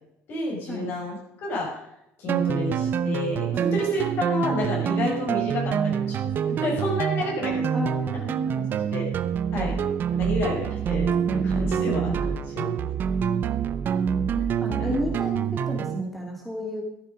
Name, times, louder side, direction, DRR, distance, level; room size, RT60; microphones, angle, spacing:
voice 1, 0.3-1.8 2.2-7.7 8.9-9.1 9.5-9.7 10.1-12.9 14.3-14.4 14.8-14.9, left 1 dB, 55° left, -1 dB, 6.1 m, -30 dB
sound 1, 2.3-16.0, right 8 dB, 45° right, 0.8 m, -26 dB
voice 2, 7.7-8.7 14.6-16.8, left 1 dB, ahead, 0 dB, 2.3 m, -32 dB
13.5 x 11.5 x 5.2 m, 0.81 s
cardioid pair, 130°, 5 cm